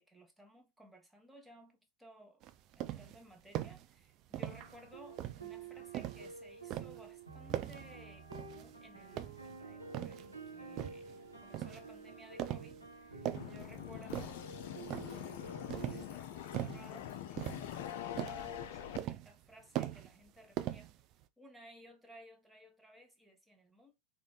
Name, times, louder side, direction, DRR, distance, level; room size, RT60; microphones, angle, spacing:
voice 1, 0.0-2.4 2.7-14.4 15.2-21.0 21.4-23.9, equal, 5° right, 1.0 m, -58 dB
sound 1, 2.4-3.2 3.5-3.9 4.3-4.8 5.2-6.3 6.7-7.0 7.5-7.9 8.3-8.7 9.1-10.3 10.8-11.1 11.5-11.9 12.4-12.8 13.1-13.6 14.1-14.5 14.9-15.3 15.7-16.1 16.5-16.9 17.4-17.9 18.2-18.5 19.0-19.4 19.8-20.3 20.6-21.2, right 13 dB, 35° right, 0.4 m, -40 dB
sound 2, 4.3-16.0, right 4 dB, 90° right, 1.4 m, -50 dB
sound 3, 13.3-19.0, left 10 dB, 50° left, 0.5 m, -44 dB
3.9 x 2.4 x 3.4 m
figure-of-eight pair, 90°, 0 cm